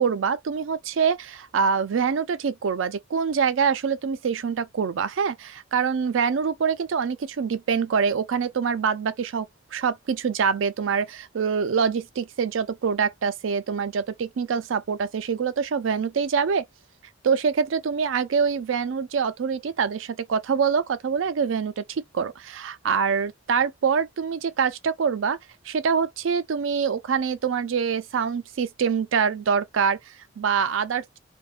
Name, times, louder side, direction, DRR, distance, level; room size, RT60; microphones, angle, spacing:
voice 1, 0.0-9.5 9.7-16.6 17.2-25.4 25.6-31.2, right 6 dB, 85° right, 0.4 m, -25 dB
2.6 x 2.2 x 2.3 m
head